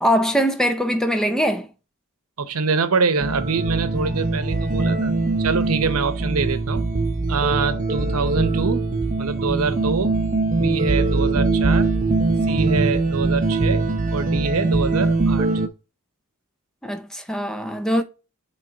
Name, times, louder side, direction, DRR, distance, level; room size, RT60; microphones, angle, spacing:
voice 1, 0.0-1.7 16.8-18.0, equal, 5° left, 0.5 m, -22 dB
voice 2, 2.4-6.9 7.3-8.8 9.2-10.2 10.5-11.9 12.5-15.5, right 4 dB, 80° right, 0.8 m, -25 dB
sound 1, 3.2-15.7, right 3 dB, 35° right, 0.7 m, -22 dB
7.8 x 3.2 x 3.9 m
head